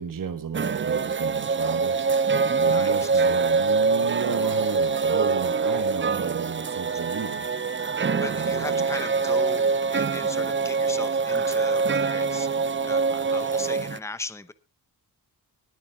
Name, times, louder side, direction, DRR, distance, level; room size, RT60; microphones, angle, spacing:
voice 1, 0.0-7.7 8.2-8.9, right 6 dB, 50° right, 10 dB, 1.2 m, -34 dB
sound 1, 0.5-14.0, right 4 dB, 30° right, 0.6 m, -24 dB
voice 2, 2.6-3.3 8.2-14.5, left 3 dB, 5° left, 14 dB, 0.8 m, -38 dB
sound 2, 3.9-11.9, right 4 dB, 65° right, 3.3 m, -52 dB
Wind instrument woodwind instrument, 6.3-11.6, equal, 25° left, 1.5 m, -47 dB
20.5 x 9.1 x 3.5 m, 0.29 s
wide cardioid pair, 100°, 41 cm